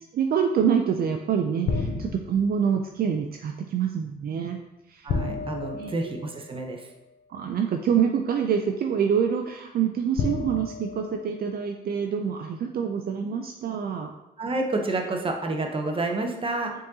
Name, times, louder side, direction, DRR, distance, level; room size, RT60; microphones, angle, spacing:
voice 1, 0.0-4.6 4.9-5.1 5.8-5.9 7.3-14.1, right 7 dB, 55° right, 4 dB, 0.4 m, -26 dB
sound 1, 1.7-2.6 5.1-6.7 7.9-8.0 10.2-11.9, left 4 dB, 75° left, 0.6 m, -32 dB
voice 2, 5.0-6.9 14.4-16.7, right 2 dB, 30° right, 3 dB, 0.8 m, -29 dB
5.1 x 3.7 x 2.7 m, 0.95 s
cardioid pair, 80°, 18 cm